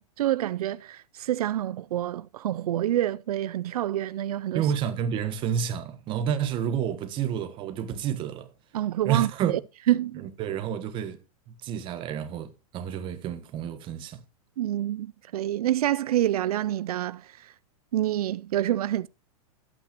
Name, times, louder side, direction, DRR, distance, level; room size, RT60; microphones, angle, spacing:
voice 1, 0.0-4.7 8.7-9.6 9.9-10.3 14.6-17.5 17.9-19.1, right 13 dB, 90° right, 0.4 m, -27 dB
voice 2, 4.5-8.5 9.0-9.5 10.2-11.2 11.5-14.2, right 9 dB, 25° right, 1.2 m, -29 dB
12.0 x 8.9 x 2.9 m
supercardioid pair, 150°, 19 cm